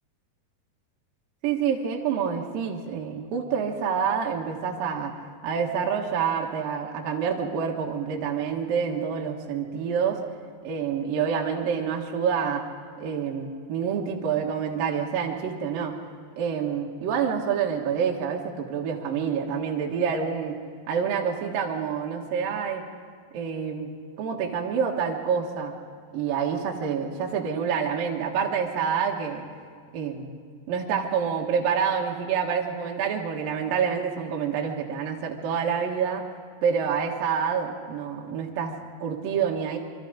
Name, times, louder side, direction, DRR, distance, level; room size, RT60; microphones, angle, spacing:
voice 1, 1.4-5.1 5.4-10.2 10.6-12.6 13.0-16.0 16.4-20.6 20.9-22.8 23.3-23.9 24.2-25.7 26.1-29.4 29.9-30.3 30.7-36.2 36.6-39.8, right 7 dB, 65° right, 0 dB, 3.0 m, -27 dB
26.0 x 24.5 x 5.1 m, 2.1 s
omnidirectional pair, 4.9 m